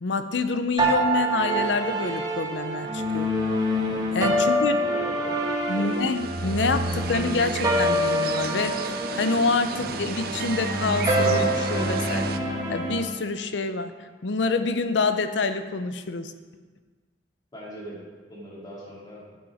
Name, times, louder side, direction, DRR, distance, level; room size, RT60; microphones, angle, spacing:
voice 1, 0.0-3.3 4.1-4.8 5.7-12.3 12.7-13.9 14.2-16.3, left 4 dB, 75° left, 9 dB, 0.6 m, -27 dB
sound 1, 0.8-13.0, right 1 dB, 20° right, 1.3 m, -26 dB
sound 2, 3.7-13.0, equal, 40° left, 3.0 m, -45 dB
voice 2, 4.8-5.5 5.8-5.9 17.5-19.4, right 1 dB, 25° left, -5 dB, 2.5 m, -40 dB
sound 3, 5.6-12.4, right 6 dB, 55° right, 0.5 m, -34 dB
11.5 x 6.1 x 4.9 m, 1.4 s
head